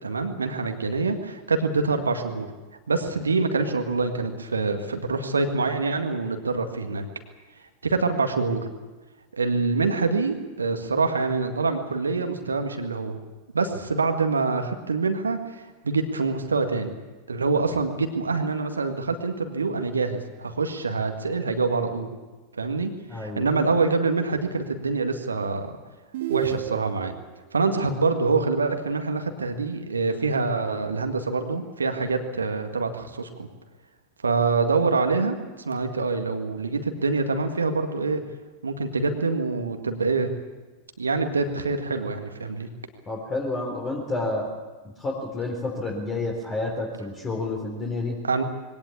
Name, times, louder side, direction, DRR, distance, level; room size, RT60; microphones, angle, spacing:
voice 1, 0.0-2.5 2.9-7.1 7.8-8.6 9.4-13.2 13.5-16.9 17.3-22.1 22.5-25.7 26.3-27.1 27.5-33.5 34.2-38.2 38.6-40.3 41.0-42.7 48.2-48.4, right 4 dB, 75° right, 6 dB, 1.9 m, -25 dB
voice 2, 23.1-23.5 43.1-44.5 45.0-48.2, left 2 dB, 20° left, -1 dB, 3.9 m, -29 dB
sound 1, 26.1-27.2, right 13 dB, 55° right, 1.9 m, -29 dB
22.0 x 17.5 x 8.6 m, 1.2 s
figure-of-eight pair, 90°, 0 cm